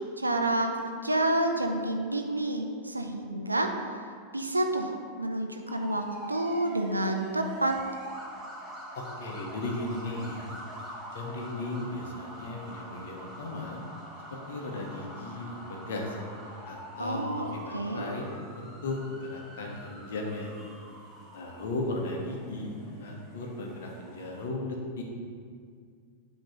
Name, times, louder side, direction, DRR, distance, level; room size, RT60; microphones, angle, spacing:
voice 1, 0.2-3.7 4.3-7.7 17.0-18.1, right 1 dB, 85° right, 4 dB, 0.6 m, -29 dB
sound 1, 5.7-24.5, right 1 dB, 10° right, 1.5 m, -45 dB
voice 2, 8.9-10.4 11.1-13.8 14.3-16.2 16.7-20.5 21.3-25.0, left 2 dB, 60° left, 0 dB, 1.1 m, -36 dB
9.0 x 3.2 x 5.7 m, 2.1 s
figure-of-eight pair, 90°, 0 cm